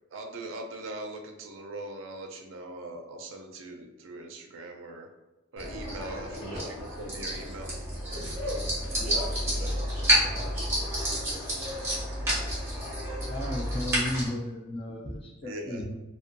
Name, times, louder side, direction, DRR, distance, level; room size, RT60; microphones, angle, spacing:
voice 1, 0.1-5.1 5.5-7.7 11.8-12.5 15.4-15.8, right 2 dB, 65° right, 3 dB, 0.4 m, -41 dB
sound 1, 5.6-14.3, equal, 10° right, 0.8 m, -30 dB
voice 2, 6.4-6.8 9.0-11.1, equal, 70° left, -10 dB, 0.8 m, -41 dB
voice 3, 13.2-15.9, left 1 dB, 25° left, 0 dB, 0.3 m, -34 dB
2.5 x 2.2 x 2.5 m, 1.0 s
head